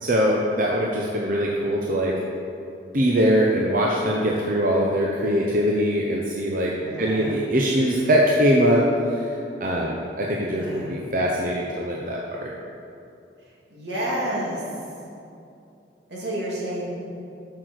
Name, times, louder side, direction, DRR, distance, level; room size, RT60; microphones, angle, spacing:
voice 1, 0.0-2.2 2.9-12.5, equal, 50° right, -2 dB, 0.8 m, -22 dB
voice 2, 6.8-7.3 10.5-11.0 13.7-14.6 16.1-16.9, right 1 dB, 75° right, -5 dB, 2.4 m, -30 dB
8.2 x 6.4 x 6.4 m, 2.7 s
head